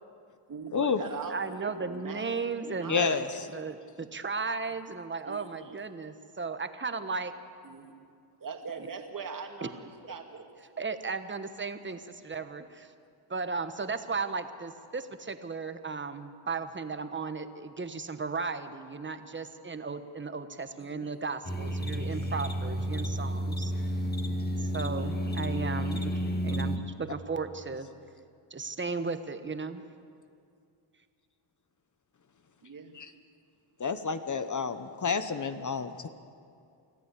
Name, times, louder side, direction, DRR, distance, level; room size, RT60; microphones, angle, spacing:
voice 1, 0.5-3.5 5.3-5.8 7.6-7.9 8.4-10.5 20.8-21.2 32.6-32.9, right 5 dB, 40° right, 4 dB, 2.4 m, -41 dB
voice 2, 1.3-3.2 3.5-7.3 10.0-10.1 10.8-12.9 13.3-23.7 24.6-27.9 28.5-29.8, right 4 dB, 25° right, 9 dB, 1.3 m, -35 dB
voice 3, 2.9-3.4 32.9-33.1 33.8-36.1, left 5 dB, 35° left, 10 dB, 1.0 m, -30 dB
sound 1, 21.4-26.8, equal, 20° left, 2.0 m, -31 dB
25.0 x 14.5 x 8.4 m, 2.4 s
cardioid pair, 100°, 49 cm